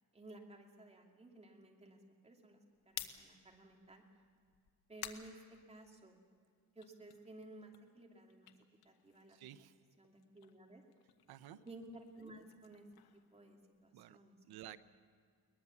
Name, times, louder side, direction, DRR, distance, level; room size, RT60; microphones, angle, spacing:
voice 1, 0.1-4.0 4.9-5.4 5.7-6.2 6.7-8.5 8.8-9.4 10.0-10.8 11.7-12.9 13.3-14.6, right 2 dB, 15° right, 1 dB, 2.7 m, -56 dB
Red Bull Can, 2.8-6.3 6.7-9.6 9.9-14.0, left 11 dB, 80° left, 1.4 m, -54 dB
voice 2, 9.3-9.8 11.3-11.6 13.9-14.2 14.4-14.8, right 13 dB, 80° right, 13 dB, 0.9 m, -53 dB
22.0 x 20.0 x 7.2 m, 2.1 s
cardioid pair, 140°, 37 cm